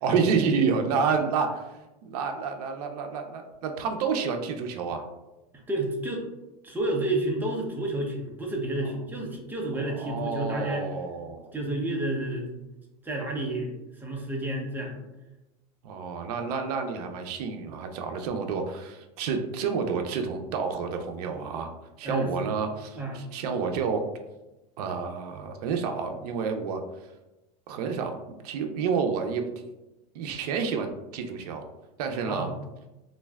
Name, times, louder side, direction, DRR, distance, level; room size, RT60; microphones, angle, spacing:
voice 1, 0.0-5.1 9.9-11.5 15.8-21.7 22.0-24.0 24.8-26.8 27.7-28.2 28.4-29.5 30.1-31.6 32.0-32.5, right 5 dB, 80° right, 5 dB, 0.5 m, -29 dB
voice 2, 5.5-6.3 6.6-10.9 11.5-12.6 13.0-14.9 22.0-22.5 22.9-23.2 32.3-32.5, right 1 dB, 10° right, -1 dB, 0.6 m, -30 dB
3.2 x 2.5 x 2.3 m, 1.0 s
supercardioid pair, 130°, 20 cm